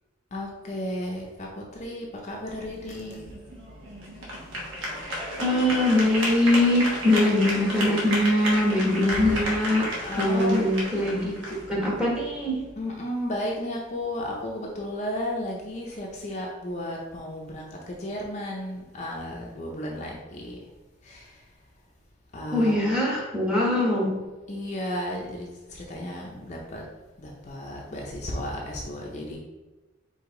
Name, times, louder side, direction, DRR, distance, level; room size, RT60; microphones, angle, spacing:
voice 1, 0.3-3.2 8.8-9.3 10.0-10.7 12.8-20.6 21.0-21.4 22.3-22.8 24.5-26.8 27.2-29.4, left 1 dB, 35° left, -2 dB, 0.6 m, -34 dB
sound 1, 2.6-12.7, equal, 70° right, 1.1 m, -33 dB
voice 2, 5.4-9.9 10.1-11.3 11.7-12.6 22.5-24.2, left 1 dB, 5° right, -4 dB, 1.1 m, -22 dB
4.8 x 2.7 x 3.8 m, 1.2 s
head